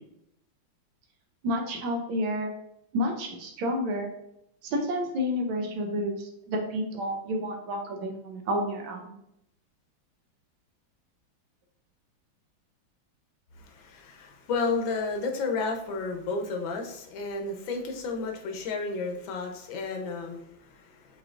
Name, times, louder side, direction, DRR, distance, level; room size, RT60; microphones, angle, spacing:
voice 1, 1.4-2.5 2.9-4.1 4.6-9.1, equal, 90° right, 2 dB, 1.6 m, -30 dB
voice 2, 13.6-21.2, left 4 dB, 75° left, 3 dB, 1.5 m, -32 dB
6.3 x 3.1 x 2.4 m, 0.79 s
omnidirectional pair, 2.2 m